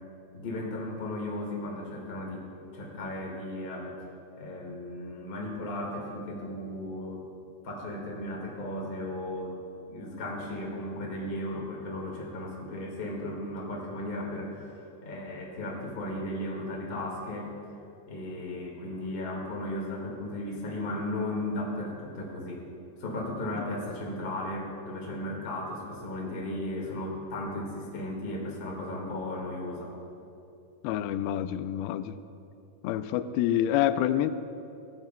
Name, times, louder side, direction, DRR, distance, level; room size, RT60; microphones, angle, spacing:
voice 1, 0.3-2.5 2.7-4.0 4.4-7.3 7.6-9.6 9.9-17.5 18.0-22.7 23.0-29.9, left 1 dB, 50° left, -2 dB, 1.1 m, -35 dB
voice 2, 30.8-32.2 32.8-34.3, left 11 dB, 85° left, 11 dB, 2.1 m, -27 dB
25.5 x 14.5 x 2.2 m, 2.7 s
omnidirectional pair, 4.9 m